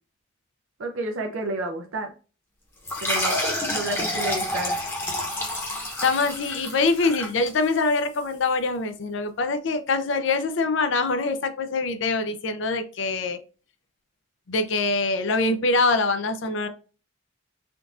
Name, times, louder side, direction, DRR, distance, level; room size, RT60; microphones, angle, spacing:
voice 1, 0.8-2.1 3.0-3.4 3.7-4.8, right 2 dB, 90° right, 3 dB, 0.5 m, -30 dB
sound 1, 2.8-8.0, left 1 dB, 10° left, 0.8 m, -28 dB
voice 2, 6.0-13.4 14.5-16.7, left 3 dB, 70° left, 9 dB, 0.5 m, -24 dB
3.7 x 2.3 x 2.5 m, 0.35 s
head